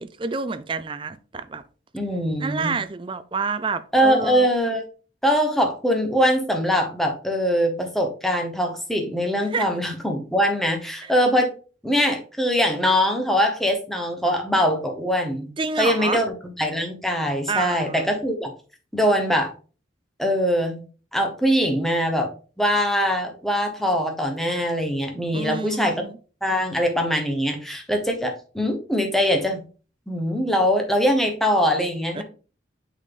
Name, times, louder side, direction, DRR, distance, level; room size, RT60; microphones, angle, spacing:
voice 1, 0.0-1.6 2.4-4.5 9.5-9.7 11.0-11.1 15.6-16.2 17.5-18.1 25.3-26.2 32.1-32.2, right 4 dB, 25° right, 0.4 m, -28 dB
voice 2, 1.9-2.7 3.9-4.8 5.2-11.5 11.8-15.5 15.8-16.3 16.6-18.5 18.9-19.5 20.2-20.8 21.1-22.3 22.6-25.9 26.4-29.6 30.1-32.2, equal, ahead, 1.0 m, -22 dB
6.1 x 4.1 x 3.8 m
head